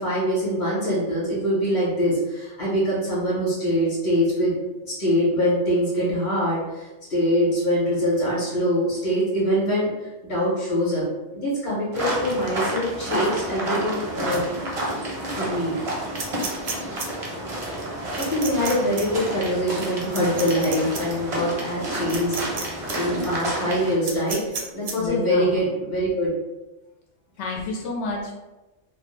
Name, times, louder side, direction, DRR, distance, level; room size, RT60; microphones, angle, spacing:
voice 1, 0.0-4.5 4.9-11.0 11.3-14.5 15.3-15.8 18.1-24.4 24.7-26.3, equal, 50° left, -8 dB, 1.0 m, -24 dB
sound 1, 11.9-23.9, right 1 dB, 45° right, 0.5 m, -30 dB
sound 2, 16.2-17.1 18.2-18.7 19.0-19.1 20.1-21.0 22.1-22.6 22.9-23.0 24.0-24.9, right 4 dB, 75° right, 0.8 m, -31 dB
voice 2, 25.0-25.5 27.4-28.3, left 3 dB, 85° left, -2 dB, 1.0 m, -30 dB
2.4 x 2.0 x 3.1 m, 1.0 s
omnidirectional pair, 1.2 m